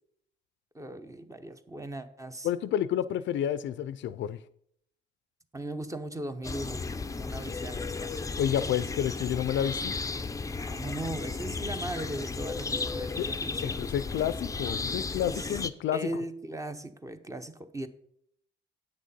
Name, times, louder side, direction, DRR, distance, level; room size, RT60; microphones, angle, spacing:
voice 1, 0.7-2.5 5.5-6.8 7.1-8.2 10.7-13.8 15.3-15.6 15.9-17.9, right 1 dB, 15° right, 0.8 m, -38 dB
voice 2, 2.4-4.4 8.4-10.0 13.2-13.3 13.6-16.0, left 10 dB, 70° left, 0.5 m, -30 dB
sound 1, 6.4-15.7, left 4 dB, 15° left, 0.5 m, -34 dB
8.6 x 6.4 x 5.4 m
cardioid pair, 90°, 20 cm